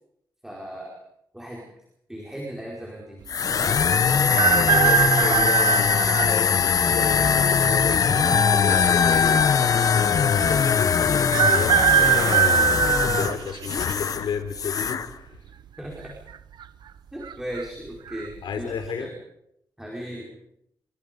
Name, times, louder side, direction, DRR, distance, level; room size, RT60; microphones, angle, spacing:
voice 1, 0.4-1.0 1.3-1.7 2.1-3.2 15.8-16.1 17.1-19.1 19.8-20.4, equal, 5° right, -2 dB, 5.0 m, -36 dB
sound 1, 3.3-14.3 14.5-15.1, left 6 dB, 50° left, 1.0 m, -21 dB
sound 2, 4.3-6.3 7.0-7.1 8.2-8.8 9.1-9.2 9.4-9.5 11.3-13.9 14.5-14.9 16.0-16.4 16.6-16.7 17.2-17.6 18.1-18.3, right 8 dB, 75° right, 1.1 m, -21 dB
voice 2, 4.5-15.2 18.4-19.1, left 6 dB, 80° left, 8 dB, 4.0 m, -32 dB
27.0 x 24.0 x 5.4 m, 0.77 s
wide cardioid pair, 155°, 8 cm